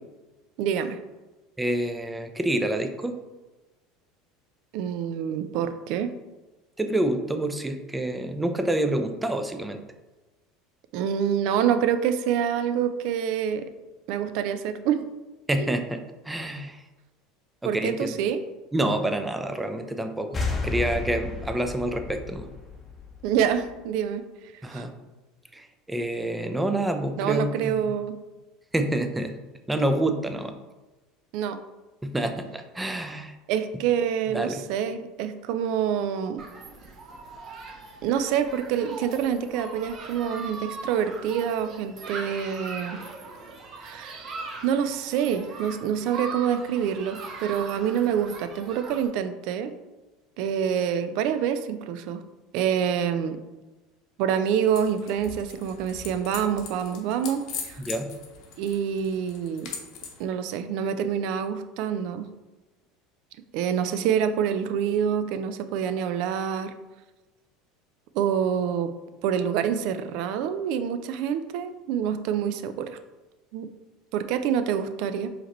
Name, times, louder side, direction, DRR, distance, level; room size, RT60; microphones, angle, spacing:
voice 1, 0.6-1.0 4.7-6.1 10.9-13.7 14.1-15.1 15.6-15.8 17.6-18.4 23.2-24.3 24.6-24.9 27.2-28.2 31.3-31.6 33.5-36.4 38.0-43.0 43.8-44.2 44.6-49.8 50.4-52.2 52.5-53.4 54.2-57.8 58.6-59.7 60.2-62.3 63.5-66.7 68.1-68.9 69.2-73.0 73.5-73.7 74.1-75.3, right 8 dB, 65° right, 10 dB, 0.3 m, -26 dB
voice 2, 1.6-3.1 6.8-9.8 15.5-16.8 17.6-18.1 18.7-22.5 24.6-24.9 25.5-27.8 28.7-29.3 29.7-30.5 32.0-33.4 34.3-34.6 57.8-58.1, right 1 dB, 10° right, 7 dB, 0.5 m, -27 dB
sound 1, 20.3-23.8, left 3 dB, 25° left, 0.7 m, -32 dB
Human group actions, 36.4-49.1, right 3 dB, 45° right, 0.9 m, -40 dB
sound 2, 54.7-60.2, left 6 dB, 65° left, 0.9 m, -41 dB
4.8 x 3.0 x 3.0 m, 1.1 s
supercardioid pair, 95°, 0 cm